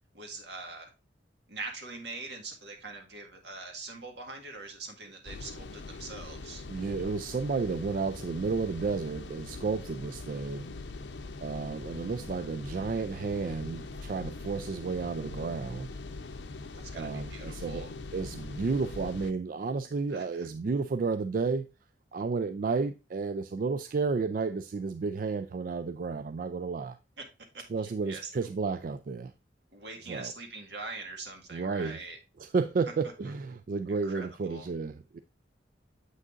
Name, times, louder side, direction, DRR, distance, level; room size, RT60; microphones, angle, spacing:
voice 1, 0.1-0.9 1.5-6.6 16.7-17.9 20.1-20.5 27.2-27.3 27.5-28.5 29.7-32.2 33.9-34.7, right 3 dB, 75° right, 1.9 m, -43 dB
sound 1, 5.3-19.3, left 3 dB, 85° left, 0.7 m, -42 dB
voice 2, 6.7-10.7 11.4-16.0 16.9-17.9 18.1-21.7 22.1-27.0 27.7-29.3 30.1-30.3 31.5-32.0 32.4-35.2, right 4 dB, 50° right, 0.3 m, -32 dB
7.9 x 6.1 x 2.5 m
head